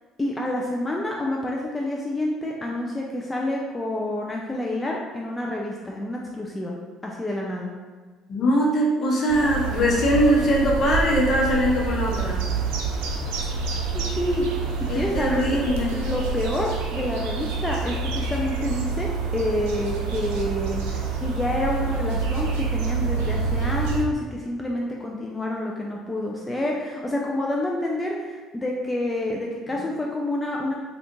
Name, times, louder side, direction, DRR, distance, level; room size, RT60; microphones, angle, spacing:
voice 1, 0.2-6.8 7.0-7.7 13.9-14.5 14.9-15.7 15.9-30.8, left 1 dB, 20° left, -2 dB, 0.4 m, -28 dB
voice 2, 8.3-12.4 14.9-16.0, equal, 55° left, -3 dB, 0.9 m, -21 dB
sound 1, 9.3-24.0, right 4 dB, 85° right, 0.4 m, -27 dB
3.4 x 2.4 x 3.0 m, 1.4 s
supercardioid pair, 75°, 0 cm